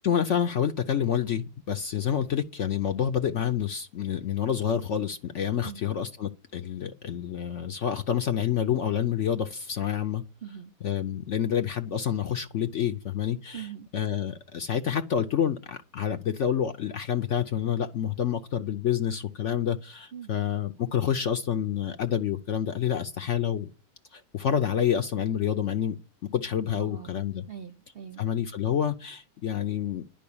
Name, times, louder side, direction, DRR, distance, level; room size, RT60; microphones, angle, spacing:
voice 1, 0.0-10.2 10.8-13.7 13.9-23.7 24.1-26.0 26.3-27.4 28.2-30.0, left 9 dB, 60° left, 0.9 m, -28 dB
voice 2, 10.4-10.7 13.5-13.9 20.1-20.3 26.7-27.1 27.5-28.2, right 8 dB, 50° right, 0.8 m, -41 dB
11.0 x 5.4 x 8.6 m
omnidirectional pair, 1.8 m